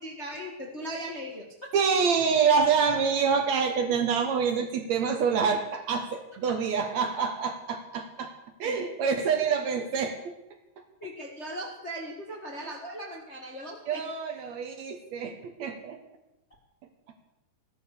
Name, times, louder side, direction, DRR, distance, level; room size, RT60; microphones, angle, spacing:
voice 1, 0.0-1.7 11.0-14.0, equal, 35° left, -1 dB, 1.2 m, -38 dB
voice 2, 1.7-10.4 10.8-10.9 13.9-16.0, right 6 dB, 65° right, 6 dB, 2.1 m, -26 dB
14.5 x 12.0 x 6.6 m, 0.92 s
omnidirectional pair, 3.9 m